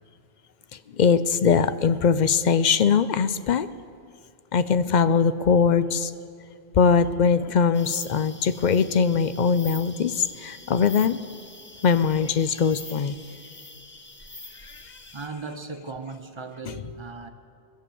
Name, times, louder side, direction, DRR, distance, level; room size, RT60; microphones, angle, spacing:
voice 1, 0.9-3.7 4.5-6.1 6.7-11.2 11.8-13.2 14.7-14.8 16.6-16.7, left 6 dB, 50° left, 13 dB, 0.6 m, -21 dB
sound 1, 7.7-15.3, left 1 dB, 15° left, 0.7 m, -44 dB
voice 2, 15.1-17.3, right 4 dB, 30° right, 7 dB, 0.9 m, -37 dB
22.0 x 8.4 x 7.0 m, 2.2 s
omnidirectional pair, 1.1 m